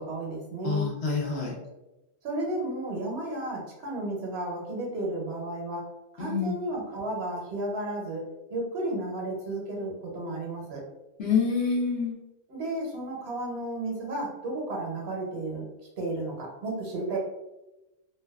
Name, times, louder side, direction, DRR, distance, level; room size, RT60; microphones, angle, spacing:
voice 1, 0.0-0.9 2.2-5.9 6.1-8.2 8.5-10.8 12.5-15.6 16.0-17.2, right 1 dB, 70° right, -1 dB, 0.9 m, -33 dB
voice 2, 0.6-1.5 6.2-6.6 11.2-12.1, left 5 dB, 70° left, -3 dB, 0.9 m, -27 dB
2.5 x 2.2 x 2.2 m, 1.0 s
omnidirectional pair, 1.2 m